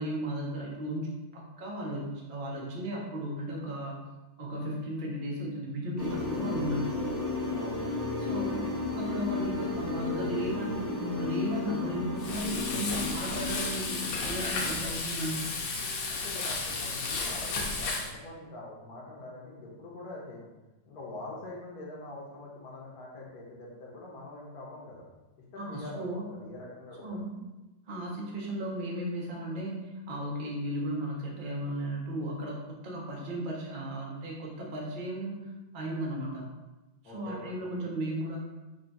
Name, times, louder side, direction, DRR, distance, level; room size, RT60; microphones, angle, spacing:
voice 1, 0.0-4.0 4.4-6.9 8.2-8.7 8.9-15.5 25.6-26.3 27.0-27.4 27.9-29.8 30.1-35.4 35.7-36.5 37.0-38.4, right 1 dB, 80° right, -2 dB, 0.4 m, -35 dB
sound 1, 6.0-14.8, left 3 dB, 20° left, 0.5 m, -33 dB
voice 2, 7.5-7.9 16.1-20.5 20.8-25.1 25.3-27.2 37.0-37.7, left 2 dB, 60° left, -3 dB, 1.3 m, -44 dB
Frying (food), 12.2-18.1, left 3 dB, 85° left, 1.4 m, -33 dB
3.8 x 2.3 x 3.9 m, 1.1 s
omnidirectional pair, 2.0 m